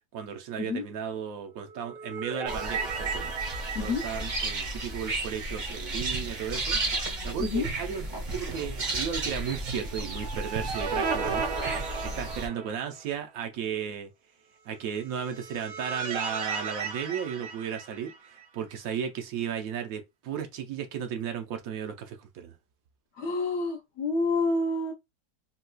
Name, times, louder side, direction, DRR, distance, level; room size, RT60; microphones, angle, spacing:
voice 1, 0.1-3.3 3.8-6.8 7.2-8.1 8.3-14.1 14.6-22.5, right 8 dB, 65° right, 0.9 m, -35 dB
sound 1, 1.7-6.0 6.3-6.4 9.9-13.0 15.1-18.4, right 5 dB, 85° right, 1.6 m, -35 dB
sound 2, 2.5-12.5, right 2 dB, 35° right, 0.8 m, -33 dB
voice 2, 23.1-24.9, left 3 dB, 60° left, 0.7 m, -28 dB
3.9 x 2.3 x 2.2 m
omnidirectional pair, 1.9 m